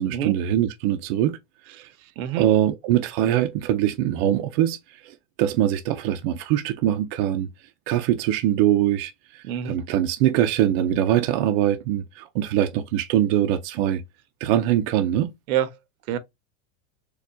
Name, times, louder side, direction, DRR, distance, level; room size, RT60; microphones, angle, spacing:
voice 1, 0.0-1.4 1.7-1.9 2.4-4.8 5.0-7.5 7.9-14.0 14.4-15.3, right 11 dB, 45° right, 0.4 m, -23 dB
voice 2, 2.2-2.5 9.4-9.8 15.5-15.7 16.1-16.2, right 10 dB, 80° right, 0.8 m, -26 dB
4.5 x 2.3 x 2.6 m
supercardioid pair, 155°, 42 cm